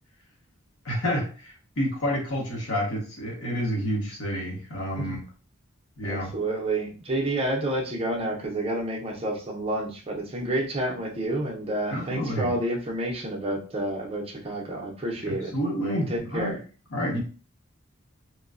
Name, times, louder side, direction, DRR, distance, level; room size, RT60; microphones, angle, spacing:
voice 1, 0.8-5.2 6.0-6.3 11.9-12.5 15.2-16.6 16.9-17.2, equal, 80° left, -2 dB, 1.1 m, -29 dB
voice 2, 6.0-15.5 16.1-16.6, right 1 dB, 25° right, -1 dB, 0.6 m, -29 dB
3.0 x 2.2 x 2.4 m, 0.38 s
head